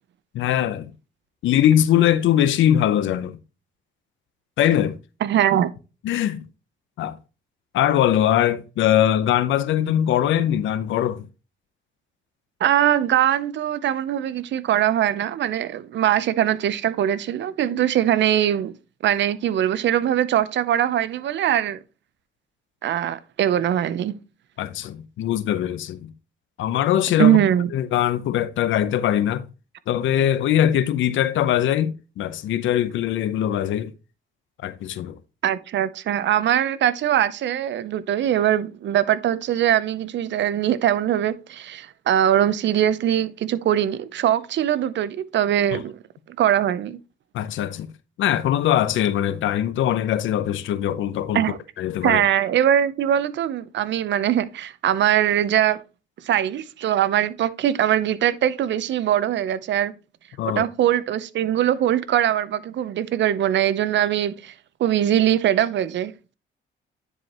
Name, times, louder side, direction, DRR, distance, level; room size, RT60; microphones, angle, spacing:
voice 1, 0.3-0.9 1.4-3.4 4.6-5.0 6.0-6.5 7.0-7.2 7.7-11.3 24.6-26.1 26.6-27.4 27.7-29.4 29.9-33.9 34.6-35.2 45.7-45.8 47.3-47.9 48.2-51.4 51.8-52.2 60.4-60.6, left 11 dB, 80° left, 0.7 m, -21 dB
voice 2, 5.2-5.7 12.6-18.7 19.0-21.8 22.8-24.2 27.2-27.7 35.4-45.9 46.3-47.0 51.3-51.6 52.0-55.8 56.2-59.9 60.4-64.5 64.8-66.3, right 11 dB, 65° right, 0.7 m, -21 dB
9.8 x 4.8 x 2.9 m
cardioid pair, 90°, 20 cm